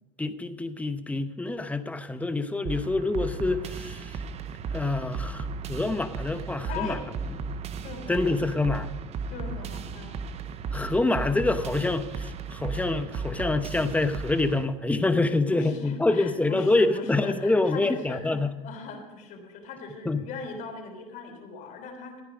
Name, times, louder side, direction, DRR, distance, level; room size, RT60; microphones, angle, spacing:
voice 1, 0.2-4.2 4.7-7.0 8.1-8.9 10.7-18.5 20.1-20.2, left 2 dB, 10° left, 9 dB, 0.9 m, -26 dB
sound 1, 2.6-14.6, right 5 dB, 45° right, 0.9 m, -35 dB
voice 2, 6.7-7.1 7.8-8.3 9.3-10.2 15.5-22.2, left 3 dB, 60° left, 3 dB, 3.5 m, -39 dB
15.0 x 9.6 x 5.1 m, 1.1 s
supercardioid pair, 110°, 15 cm